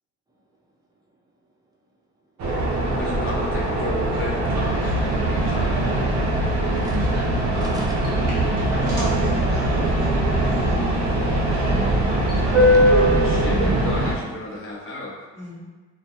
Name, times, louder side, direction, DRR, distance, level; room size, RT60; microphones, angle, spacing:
sound 1, 2.4-14.2, right 1 dB, 65° right, 0.6 m, -21 dB
voice 1, 2.9-5.9 13.1-15.2, left 1 dB, 45° left, -4 dB, 0.7 m, -33 dB
voice 2, 6.7-8.8 12.4-12.9, right 1 dB, 15° right, -2 dB, 0.4 m, -43 dB
sound 2, 8.0-9.3 9.6-9.7 10.0-10.2 10.6-11.7 12.0-12.1 12.2-13.5 14.4-14.5, right 1 dB, 30° right, 1.0 m, -39 dB
voice 3, 8.7-10.8 15.3-15.6, right 1 dB, 10° left, -12 dB, 0.9 m, -34 dB
2.2 x 2.2 x 2.7 m, 1.3 s
cardioid pair, 90°, 30 cm